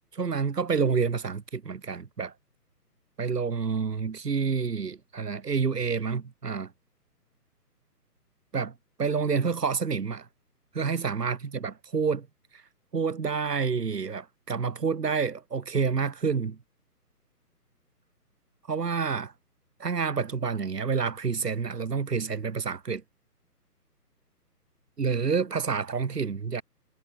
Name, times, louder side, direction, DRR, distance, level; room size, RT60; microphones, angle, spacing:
voice 1, 0.1-2.3 3.2-6.7 8.5-8.7 9.0-10.3 10.7-12.3 12.5-12.6 12.9-16.6 18.7-19.3 19.8-23.0 25.0-26.6, right 5 dB, 75° right, 2.9 m, -28 dB
hypercardioid pair, 175°, 48 cm